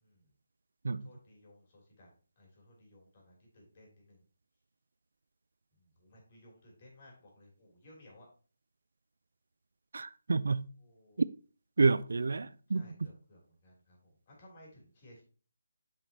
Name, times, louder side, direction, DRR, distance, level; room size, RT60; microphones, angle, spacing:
voice 1, 1.0-2.1 2.4-4.2 6.0-8.3 10.8-11.2 12.7-15.2, left 1 dB, 35° left, 3.1 m, -58 dB
voice 2, 9.9-10.6 11.8-12.9, right 4 dB, 70° right, 0.3 m, -29 dB
8.3 x 5.2 x 2.8 m
figure-of-eight pair, 165°, 0 cm